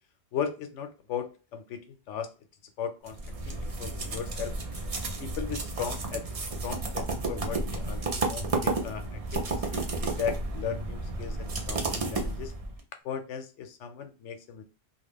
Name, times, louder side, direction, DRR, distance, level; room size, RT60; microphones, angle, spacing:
voice 1, 0.3-2.3 2.8-3.2 3.5-4.5 5.2-12.5 13.0-14.6, left 7 dB, 75° left, 7 dB, 0.9 m, -37 dB
sound 1, 3.1-12.8, right 3 dB, 45° right, 0.5 m, -32 dB
2.4 x 2.3 x 3.5 m, 0.31 s
omnidirectional pair, 1.3 m